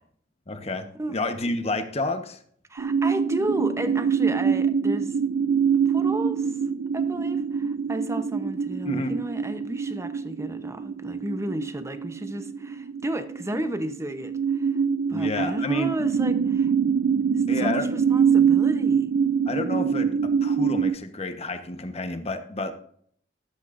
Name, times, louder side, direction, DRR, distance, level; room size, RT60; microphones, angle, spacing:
voice 1, 0.5-0.9 1.1-2.4 8.8-9.2 15.1-15.9 17.5-17.9 19.5-22.7, left 2 dB, 35° left, 1.1 m, -30 dB
voice 2, 2.7-5.1 5.9-6.5 6.9-14.7 15.1-16.7 17.5-19.1, right 1 dB, 15° right, 0.8 m, -32 dB
sound 1, 2.8-20.9, right 6 dB, 80° right, 0.4 m, -24 dB
13.5 x 12.0 x 2.6 m
head